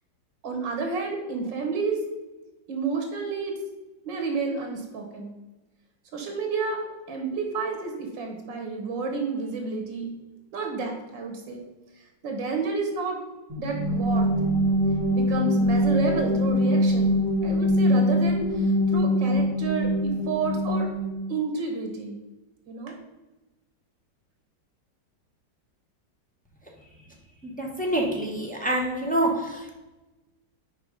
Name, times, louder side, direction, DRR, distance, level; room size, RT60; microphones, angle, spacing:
voice 1, 0.4-2.0 2.7-3.5 4.1-5.3 6.1-10.1 10.5-11.6 12.0-13.2 13.6-14.3 15.1-20.9 21.3-22.2 22.7-22.9, right 4 dB, 80° right, 2 dB, 2.2 m, -30 dB
sound 1, 13.5-21.3, equal, 20° right, 1.5 m, -23 dB
voice 2, 27.4-29.8, right 1 dB, 5° left, -1 dB, 0.7 m, -27 dB
5.9 x 4.8 x 5.2 m, 1.1 s
omnidirectional pair, 2.0 m